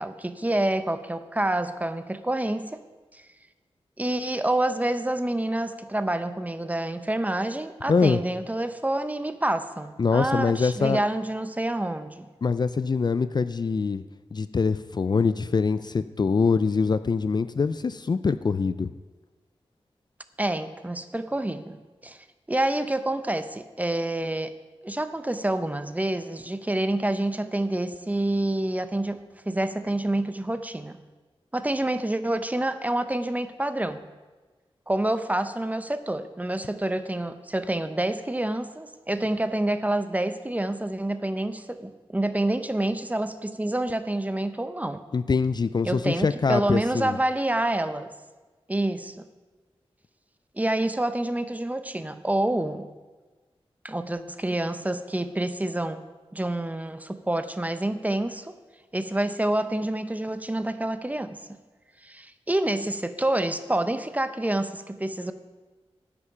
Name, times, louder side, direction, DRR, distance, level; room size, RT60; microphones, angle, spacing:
voice 1, 0.0-2.8 3.1-3.2 4.0-12.3 20.4-24.5 24.8-29.2 29.5-31.0 31.5-34.0 34.9-45.0 45.8-48.1 48.7-49.2 50.6-52.9 53.8-56.0 56.3-58.5 58.9-61.4 62.0-65.3, right 1 dB, 15° right, 11 dB, 0.6 m, -27 dB
voice 2, 7.9-8.2 10.0-11.0 12.4-14.0 14.3-18.9 45.1-47.2, left 5 dB, 45° left, 13 dB, 0.4 m, -24 dB
9.7 x 8.6 x 5.6 m, 1.3 s
wide cardioid pair, 80°, 10 cm